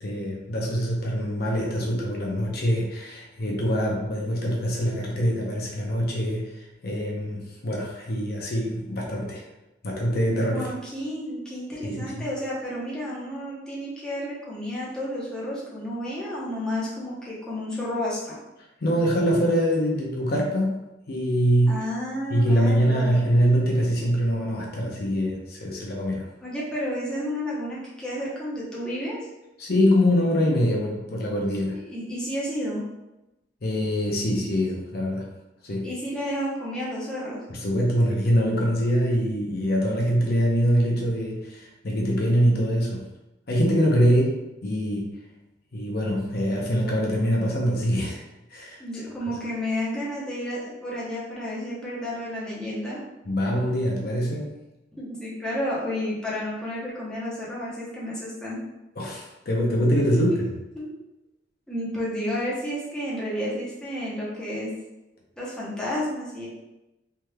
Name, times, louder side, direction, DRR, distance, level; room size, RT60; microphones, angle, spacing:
voice 1, 0.0-9.4 9.8-10.7 11.8-12.2 18.8-21.8 22.3-26.3 29.6-31.8 33.6-35.3 35.6-35.9 37.5-43.0 43.5-45.2 45.7-48.2 48.5-48.8 53.3-54.5 59.0-60.5, equal, 55° left, -2 dB, 0.6 m, -24 dB
voice 2, 10.5-18.4 21.7-23.3 26.4-29.2 31.7-32.8 35.8-37.4 48.8-53.0 54.9-58.6 60.1-60.4 60.7-60.9 61.7-64.7 65.4-66.5, left 1 dB, 5° left, -7 dB, 0.7 m, -31 dB
3.4 x 3.1 x 2.2 m, 0.97 s
head